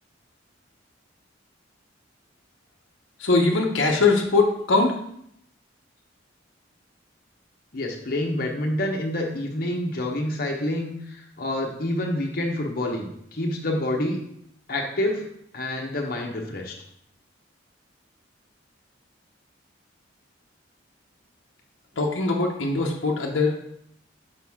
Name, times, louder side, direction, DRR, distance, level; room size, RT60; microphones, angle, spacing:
voice 1, 3.2-5.0 22.0-23.8, left 3 dB, 85° left, 1 dB, 0.8 m, -21 dB
voice 2, 7.7-14.2 14.7-15.2 15.5-16.8, left 1 dB, 50° left, 0 dB, 1.0 m, -27 dB
6.1 x 5.3 x 3.6 m, 0.72 s
head